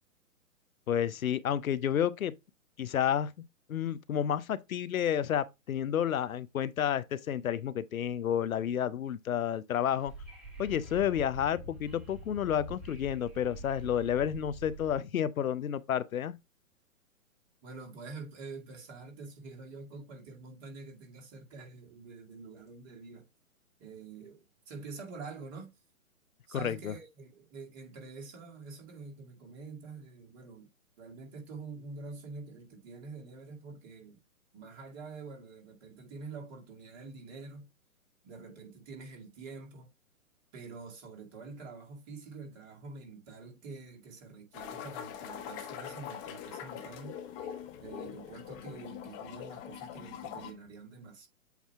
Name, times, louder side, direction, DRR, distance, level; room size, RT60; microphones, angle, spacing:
voice 1, 0.9-2.3 2.8-10.1 10.6-16.4 26.5-26.9, left 9 dB, 75° left, 0.7 m, -30 dB
Wind / Subway metro underground, 10.0-15.0, right 1 dB, ahead, 1.5 m, -46 dB
voice 2, 17.6-23.3 23.8-25.7 26.5-30.7 31.0-34.2 34.5-37.7 38.2-39.9 40.5-47.2 47.8-51.3, right 4 dB, 30° right, 2.0 m, -46 dB
sound 1, 44.5-50.5, left 9 dB, 20° left, 0.8 m, -43 dB
8.2 x 2.7 x 4.5 m
hypercardioid pair, 135°, 42 cm